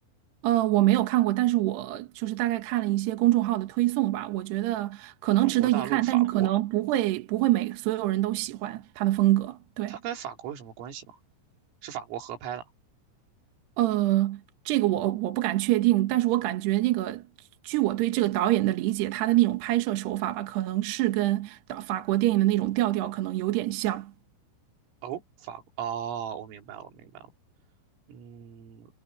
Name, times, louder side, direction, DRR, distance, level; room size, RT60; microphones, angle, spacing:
voice 1, 0.4-9.9 13.8-14.4 14.7-17.2 17.6-24.1, right 16 dB, 70° right, 3.0 m, -25 dB
voice 2, 5.4-6.5 9.9-11.2 11.8-12.7 25.0-27.3 28.1-28.9, right 9 dB, 85° right, 5.6 m, -37 dB
omnidirectional pair, 5.8 m